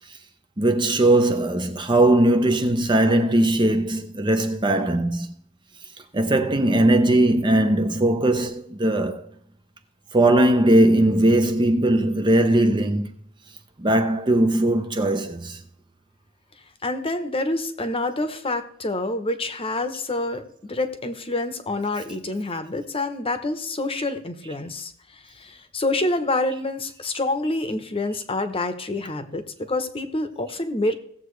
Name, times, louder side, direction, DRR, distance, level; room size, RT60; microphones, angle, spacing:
voice 1, 0.6-5.3 6.1-9.2 10.1-13.1 13.8-15.6, right 1 dB, 20° right, 0.6 m, -19 dB
voice 2, 16.8-30.9, left 2 dB, 25° left, 0.9 m, -27 dB
17.0 x 7.5 x 3.2 m
head